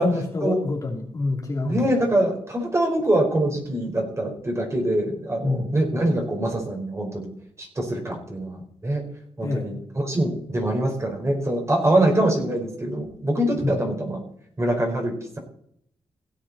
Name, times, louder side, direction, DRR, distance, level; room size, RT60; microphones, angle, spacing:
voice 1, 0.0-2.0 5.4-5.7 9.4-9.7 13.6-13.8, left 3 dB, 35° left, -1 dB, 2.9 m, -27 dB
voice 2, 1.6-7.3 7.6-9.0 9.4-14.2 14.6-15.4, right 1 dB, 25° right, 0 dB, 4.5 m, -24 dB
16.5 x 8.3 x 4.2 m, 0.66 s
cardioid pair, 90°, 11 cm